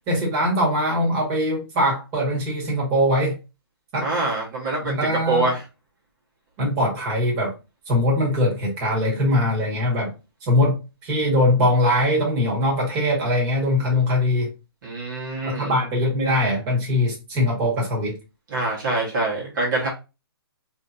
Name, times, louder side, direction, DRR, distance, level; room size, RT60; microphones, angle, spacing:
voice 1, 0.1-3.3 3.9-4.1 4.8-5.5 6.6-7.5 7.9-10.1 10.4-10.8 11.0-14.5 15.4-18.1, left 1 dB, 25° right, -3 dB, 1.6 m, -21 dB
voice 2, 4.0-5.6 14.8-15.8 18.5-19.9, right 2 dB, 50° right, -3 dB, 1.5 m, -25 dB
3.3 x 2.9 x 2.6 m, 0.29 s
hypercardioid pair, 155°, 13 cm